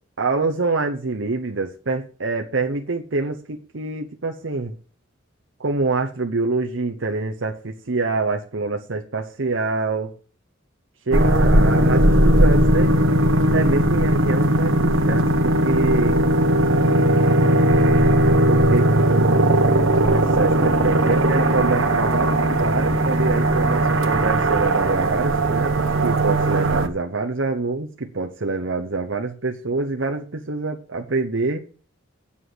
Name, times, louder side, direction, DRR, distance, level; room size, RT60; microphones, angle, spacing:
voice 1, 0.2-4.7 5.6-10.1 11.1-13.0 13.4-16.2 18.5-19.7 20.0-25.8 26.0-31.6, right 3 dB, 70° right, 3 dB, 0.9 m, -25 dB
sound 1, 11.1-26.9, right 1 dB, 85° right, 1.3 m, -18 dB
8.4 x 7.5 x 7.8 m, 0.40 s
head